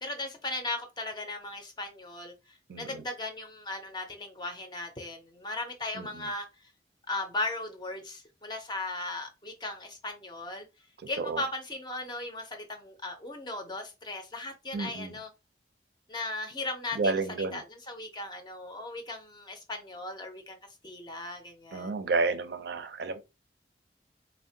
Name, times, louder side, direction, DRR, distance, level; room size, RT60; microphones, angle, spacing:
voice 1, 0.0-6.7 7.1-10.7 11.1-15.3 16.1-20.6 20.8-21.9, left 2 dB, 25° left, 0.5 m, -37 dB
voice 2, 2.7-3.1 5.9-6.3 11.2-11.4 14.7-15.2 16.9-17.6 21.7-23.2, right 3 dB, 65° right, 0.4 m, -31 dB
3.5 x 2.1 x 2.7 m
head